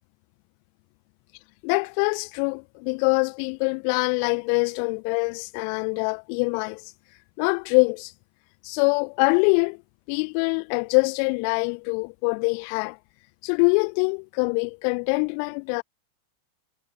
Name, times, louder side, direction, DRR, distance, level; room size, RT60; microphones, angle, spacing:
voice 1, 1.6-6.8 7.4-8.1 8.6-9.8 10.1-13.0 13.4-15.8, left 40 dB or more, 45° left, 1.6 m, -24 dB
figure-of-eight pair, 90°, 0 cm